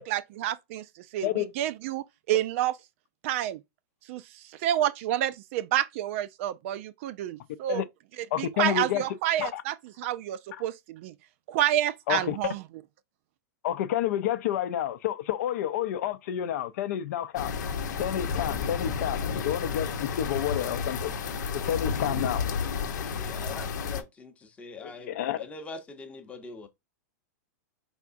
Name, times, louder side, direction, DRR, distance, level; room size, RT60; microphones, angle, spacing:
voice 1, 0.1-2.8 3.2-3.6 4.1-7.8 8.2-11.1 11.5-12.6, right 12 dB, 45° right, 0.4 m, -29 dB
voice 2, 8.3-9.0 9.4-9.6 12.1-12.4 13.6-17.6 18.0-21.1 21.5-22.4 24.8-25.4, left 11 dB, 60° left, 0.5 m, -29 dB
sound 1, 17.4-24.0, left 5 dB, 85° left, 0.8 m, -31 dB
voice 3, 22.9-26.7, left 3 dB, 15° left, 0.7 m, -43 dB
4.6 x 3.4 x 2.5 m
supercardioid pair, 150°, 9 cm